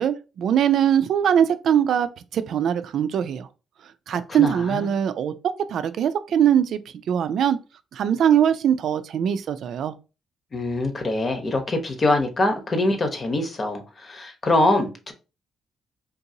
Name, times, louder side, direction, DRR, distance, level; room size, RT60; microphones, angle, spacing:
voice 1, 0.0-3.5 4.1-5.3 5.7-6.8 7.1-7.6 7.9-9.9, right 9 dB, 70° right, 0.4 m, -21 dB
voice 2, 4.1-4.9 10.5-15.1, left 2 dB, 45° left, 1.0 m, -24 dB
3.7 x 2.6 x 2.8 m
supercardioid pair, 55°, 0 cm